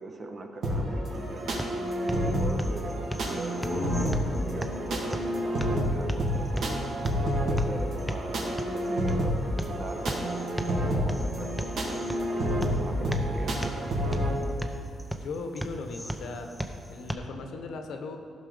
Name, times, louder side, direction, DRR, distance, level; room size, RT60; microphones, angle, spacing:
voice 1, 0.0-1.6 2.1-6.8 7.4-13.7, right 2 dB, 35° right, 4 dB, 1.0 m, -41 dB
sound 1, 0.6-14.3, equal, 60° right, 2.4 m, -29 dB
sound 2, 1.1-17.1, equal, ahead, 0.6 m, -38 dB
sound 3, 3.5-7.0, left 4 dB, 45° left, 0.5 m, -40 dB
voice 2, 15.1-18.2, left 3 dB, 75° left, 5 dB, 1.1 m, -38 dB
15.0 x 6.1 x 5.1 m, 2.7 s
cardioid pair, 140°, 0 cm